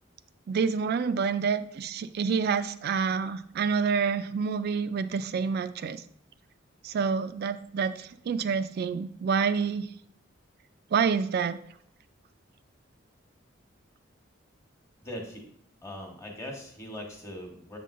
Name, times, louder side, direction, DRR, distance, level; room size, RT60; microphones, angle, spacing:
voice 1, 0.5-6.0 6.8-9.9 10.9-11.6, right 6 dB, 55° right, 12 dB, 0.3 m, -28 dB
voice 2, 15.0-15.5 15.8-17.8, left 1 dB, 15° left, 0 dB, 1.2 m, -40 dB
7.5 x 5.2 x 2.5 m, 0.66 s
head